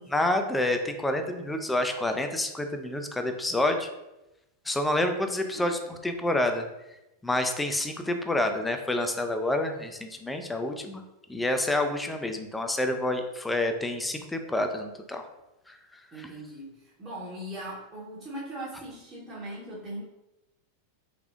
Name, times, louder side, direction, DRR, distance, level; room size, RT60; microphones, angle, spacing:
voice 1, 0.1-3.9 4.7-6.7 7.2-11.0 11.3-15.2 15.7-15.8 16.1-16.3, left 1 dB, 5° left, 6 dB, 0.4 m, -28 dB
voice 2, 16.1-20.0, right 1 dB, 25° right, -7 dB, 0.8 m, -39 dB
3.4 x 3.3 x 2.4 m, 0.94 s
figure-of-eight pair, 90°, 0 cm